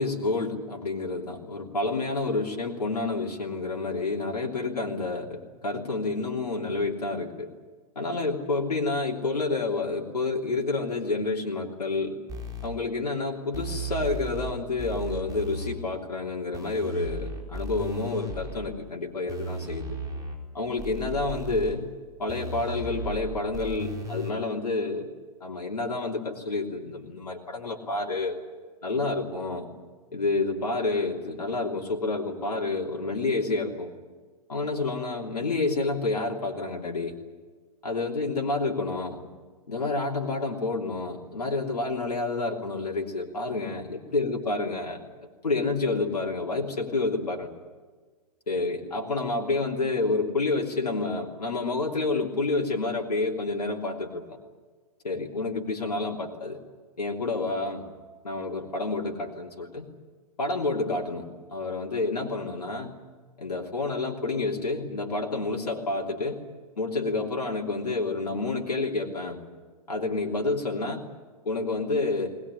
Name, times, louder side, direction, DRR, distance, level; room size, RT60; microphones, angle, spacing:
voice 1, 0.0-7.5 7.9-12.2 12.6-19.9 20.5-21.9 22.2-25.1 25.4-28.4 28.8-29.7 30.1-33.9 34.5-37.1 37.8-39.2 39.7-43.8 44.1-45.0 45.4-47.5 48.5-54.4 55.0-56.6 57.0-57.8 58.2-59.8 60.4-62.9 63.4-66.4 66.8-69.4 69.9-71.0 71.4-72.3, left 3 dB, 80° left, 0 dB, 3.2 m, -29 dB
sound 1, 12.3-12.7 13.5-14.5 14.8-15.7 16.5-18.7 19.3-20.4 20.8-21.7 22.3-24.3, right 2 dB, 20° right, 4.4 m, -35 dB
20.0 x 20.0 x 9.9 m, 1.4 s
figure-of-eight pair, 110°, 20 cm